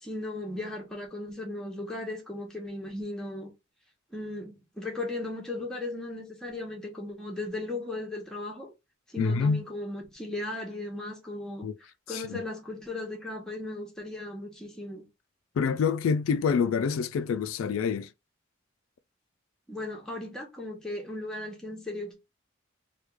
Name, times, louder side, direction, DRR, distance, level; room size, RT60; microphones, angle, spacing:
voice 1, 0.0-3.5 4.1-8.7 9.1-11.7 12.1-15.1 19.7-22.1, left 2 dB, 5° left, 1.0 m, -36 dB
voice 2, 9.2-9.6 11.6-11.7 12.1-12.4 15.6-18.1, left 5 dB, 80° left, 0.3 m, -27 dB
3.2 x 2.3 x 3.3 m
head